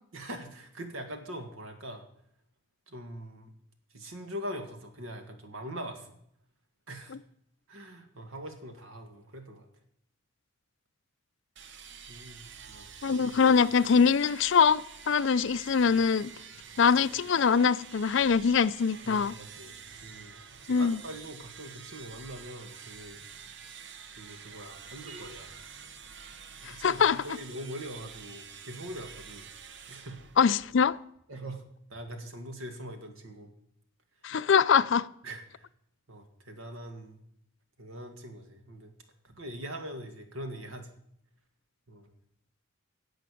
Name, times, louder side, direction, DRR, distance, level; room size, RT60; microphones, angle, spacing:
voice 1, 0.1-2.0 2.9-3.5 3.9-6.2 6.9-7.2 7.7-9.7 12.1-13.5 19.0-23.2 24.2-25.5 26.6-29.5 29.9-30.2 31.3-31.6 31.9-33.5 35.2-35.7 36.1-37.2 37.8-38.9 39.2-40.9 41.9-42.1, equal, 75° right, 2.0 m, -42 dB
sound 1, 11.6-31.0, right 6 dB, 55° right, 0.8 m, -48 dB
voice 2, 13.0-16.3 16.8-19.3 20.7-21.0 26.6-27.2 30.4-31.0 34.2-35.1, left 6 dB, 55° left, 0.4 m, -23 dB
11.0 x 7.9 x 8.4 m
head